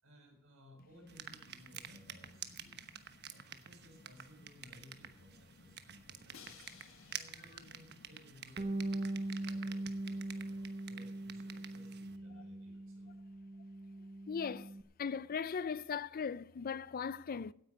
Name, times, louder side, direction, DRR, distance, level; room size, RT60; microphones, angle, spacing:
voice 1, 0.0-6.6 7.1-13.1, left 1 dB, 70° right, 6.2 m, -61 dB
sound 1, 1.1-12.2, right 9 dB, 50° right, 1.1 m, -50 dB
Crash cymbal, 6.3-8.3, left 7 dB, 70° left, 1.7 m, -59 dB
Bass guitar, 8.6-14.8, right 1 dB, 30° right, 0.7 m, -41 dB
voice 2, 14.3-14.7 15.0-17.5, left 6 dB, 45° left, 0.4 m, -38 dB
16.5 x 9.4 x 5.1 m
head